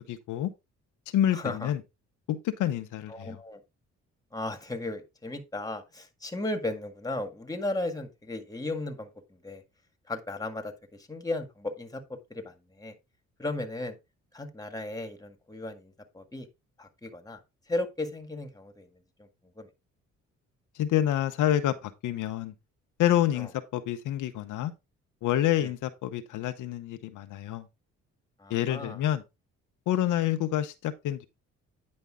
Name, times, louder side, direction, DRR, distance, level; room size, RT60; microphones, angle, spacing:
voice 1, 0.1-0.5 1.1-1.8 2.3-3.4 20.8-22.5 23.0-24.7 25.2-27.7 28.5-29.2 29.9-31.3, left 12 dB, 80° left, 0.9 m, -28 dB
voice 2, 1.3-1.7 3.1-3.6 4.3-9.6 10.1-12.9 13.4-13.9 14.3-16.5 16.8-17.4 17.7-18.9 19.2-19.3 19.6-19.7 23.4-23.5 25.6-25.7 28.4-29.0, left 2 dB, 10° left, 1.8 m, -35 dB
9.5 x 5.3 x 3.7 m
cardioid pair, 90°, 30 cm